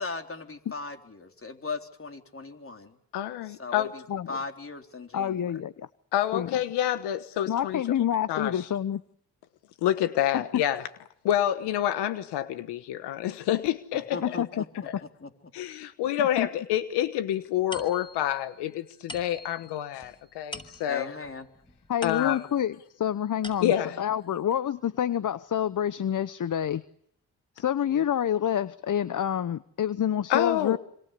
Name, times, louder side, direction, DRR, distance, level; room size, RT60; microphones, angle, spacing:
voice 1, 0.0-3.0 3.4-5.4 7.6-7.7 13.9-15.3 20.9-21.5, left 4 dB, 35° left, 5 dB, 4.0 m, -38 dB
voice 2, 3.1-3.9 6.1-7.8 8.3-8.7 9.8-10.9 11.2-14.4 14.8-14.9 15.5-21.1 22.0-22.4 23.6-24.0 30.3-30.8, left 12 dB, 85° left, 12 dB, 1.3 m, -28 dB
voice 3, 5.1-5.9 6.3-6.5 7.5-9.0 10.3-10.6 14.2-14.6 16.4-16.5 21.9-26.8 27.6-30.8, left 9 dB, 50° left, 16 dB, 1.0 m, -28 dB
sound 1, 17.7-22.7 23.1-24.0, left 1 dB, 10° left, 6.9 m, -46 dB
26.5 x 26.0 x 6.9 m, 0.71 s
supercardioid pair, 55°, 39 cm